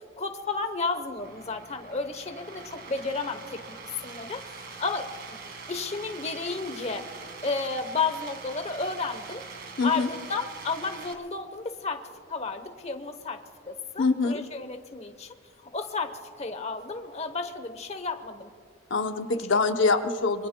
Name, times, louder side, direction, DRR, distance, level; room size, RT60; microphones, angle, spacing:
voice 1, 0.2-3.6 4.0-5.4 5.7-7.1 7.4-9.4 9.8-18.5 19.3-19.4 19.8-19.9, left 4 dB, 30° left, 8 dB, 0.9 m, -32 dB
sound 1, 1.2-11.1, right 4 dB, 50° right, 1.8 m, -43 dB
voice 2, 9.8-10.1 14.0-14.4 18.9-20.5, left 3 dB, 65° left, 6 dB, 0.7 m, -24 dB
26.5 x 24.0 x 2.2 m, 2.1 s
head